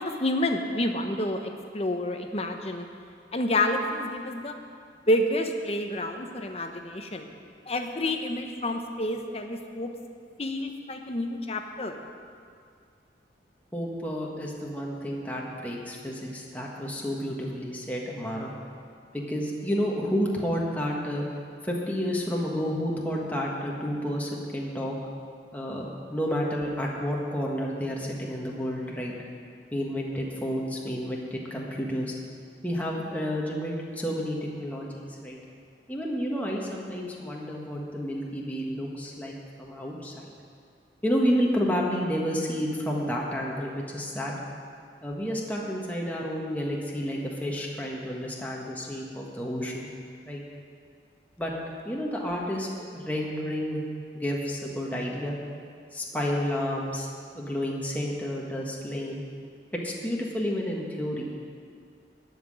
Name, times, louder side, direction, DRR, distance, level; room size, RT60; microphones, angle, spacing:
voice 1, 0.0-2.9 3.3-4.5 5.1-7.3 7.7-9.9 10.4-12.0, left 1 dB, 35° left, 5 dB, 0.9 m, -29 dB
voice 2, 13.7-18.5 19.1-21.2 21.6-25.0 25.5-29.1 29.7-32.1 32.6-35.4 35.9-40.3 41.0-44.4 45.0-49.9 50.2-50.4 51.4-51.5 51.8-53.8 54.1-55.4 55.9-59.2 59.8-61.4, equal, 10° left, -3 dB, 1.5 m, -30 dB
14.0 x 6.0 x 9.9 m, 2.3 s
head